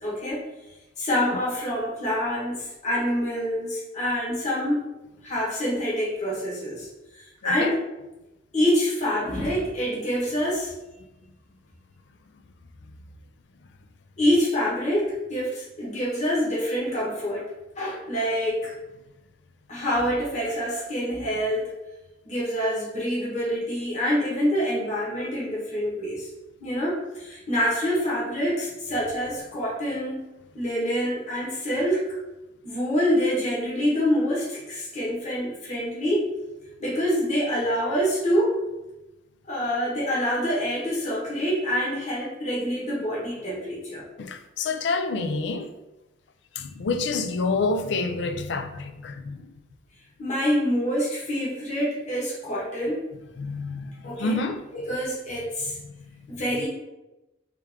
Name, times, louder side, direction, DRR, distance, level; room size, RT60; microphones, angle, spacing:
voice 1, 0.0-0.4 1.0-4.9 5.2-6.9 7.2-7.8 8.5-10.7 14.2-17.4 17.7-18.7 19.7-21.7 22.2-26.3 26.6-30.3 30.5-32.0 32.6-36.2 36.8-38.6 39.5-44.0 50.2-53.0 54.0-54.4 54.7-55.7 56.3-56.7, equal, 35° left, 1.4 m, -26 dB
voice 2, 7.4-7.7 44.2-45.7 46.6-49.5 53.4-54.7 56.0-56.1, left 3 dB, 65° left, 0.4 m, -28 dB
3.3 x 3.3 x 3.5 m
head